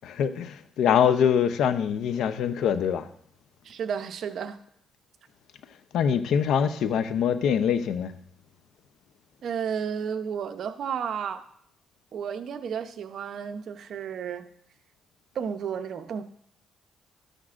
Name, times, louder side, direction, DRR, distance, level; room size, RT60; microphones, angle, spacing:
voice 1, 0.0-3.0 5.9-8.1, left 8 dB, 80° left, 0.7 m, -24 dB
voice 2, 3.6-4.6 9.4-11.5 12.1-14.5 15.3-16.2, right 7 dB, 65° right, 0.8 m, -32 dB
13.0 x 10.0 x 2.5 m
cardioid pair, 90°, 0 cm